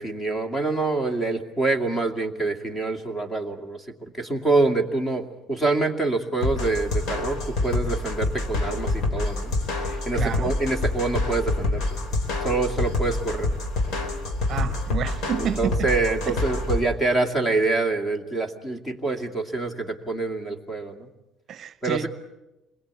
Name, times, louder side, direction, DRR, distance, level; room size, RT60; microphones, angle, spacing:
voice 1, 0.0-11.8 12.4-13.5 15.4-21.1 21.8-22.1, right 3 dB, 15° left, 2.4 m, -26 dB
sound 1, 6.4-16.8, left 2 dB, 70° left, 3.6 m, -27 dB
voice 2, 10.1-10.5 14.5-15.9 16.3-16.4 21.5-22.1, right 8 dB, 45° right, 0.9 m, -29 dB
27.5 x 21.5 x 8.3 m
cardioid pair, 140°, 0 cm